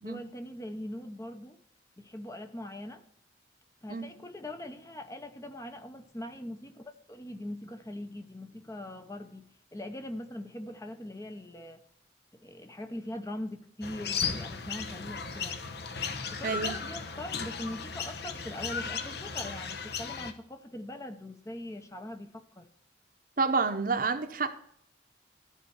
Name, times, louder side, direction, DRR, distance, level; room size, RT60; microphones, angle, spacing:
voice 1, 0.0-1.6 2.0-3.0 3.8-9.4 9.7-11.8 12.3-15.6 16.3-22.7, left 1 dB, 15° left, 0.7 m, -41 dB
sound 1, 13.8-20.3, left 6 dB, 60° left, 0.9 m, -36 dB
voice 2, 16.4-16.8 23.4-24.5, right 4 dB, 50° right, 0.9 m, -29 dB
13.0 x 4.4 x 8.0 m
head